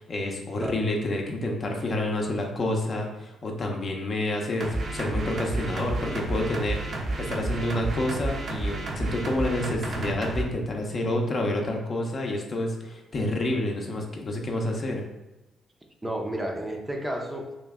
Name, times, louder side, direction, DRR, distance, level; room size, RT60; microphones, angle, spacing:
voice 1, 0.0-6.8 7.2-15.0, left 1 dB, 45° left, 1 dB, 0.7 m, -29 dB
sound 1, 4.6-10.4, right 2 dB, 50° right, 0.8 m, -31 dB
voice 2, 16.0-17.5, right 1 dB, 15° right, 1 dB, 0.6 m, -31 dB
3.2 x 3.0 x 3.6 m, 1.0 s
cardioid pair, 90°, 0 cm